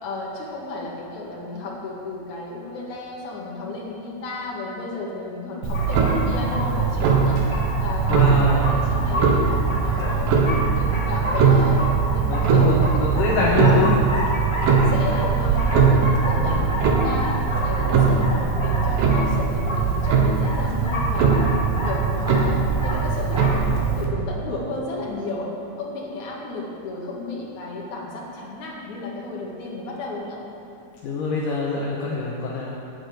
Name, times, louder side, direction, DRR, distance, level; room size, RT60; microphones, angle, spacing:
voice 1, 0.0-7.4 7.8-10.3 10.7-13.0 14.4-17.4 17.6-21.4 21.8-25.5 25.8-30.4, left 2 dB, 60° left, -3 dB, 3.3 m, -33 dB
Clock, 5.6-24.1, right 5 dB, 85° right, 3.1 m, -20 dB
sound 1, 5.7-23.6, left 1 dB, 10° left, 1.4 m, -30 dB
voice 2, 8.1-8.7 12.3-14.0 16.3-16.7 31.0-32.9, left 3 dB, 75° left, -4 dB, 2.7 m, -25 dB
9.7 x 8.6 x 9.2 m, 2.7 s
omnidirectional pair, 3.9 m